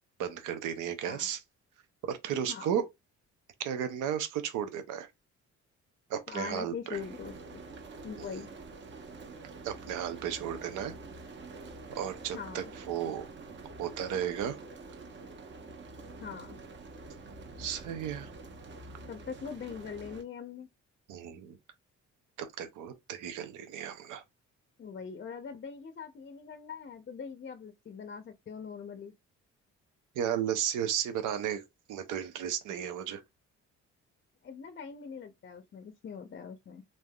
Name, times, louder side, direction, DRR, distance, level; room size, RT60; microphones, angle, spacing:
voice 1, 0.2-1.4 2.0-2.9 3.6-5.1 6.1-7.0 8.2-8.3 9.6-10.9 11.9-13.3 13.8-14.6 17.6-18.3 21.1-21.6 22.4-24.2 30.2-31.6 31.9-33.2, right 9 dB, 85° right, 0.7 m, -34 dB
voice 2, 6.3-7.6 8.0-8.5 12.3-12.6 16.2-16.6 19.1-20.7 24.8-29.1 34.4-36.8, left 6 dB, 35° left, 0.5 m, -42 dB
sound 1, 6.9-20.2, right 3 dB, 40° right, 0.8 m, -47 dB
3.3 x 2.6 x 2.2 m
cardioid pair, 90°, 30 cm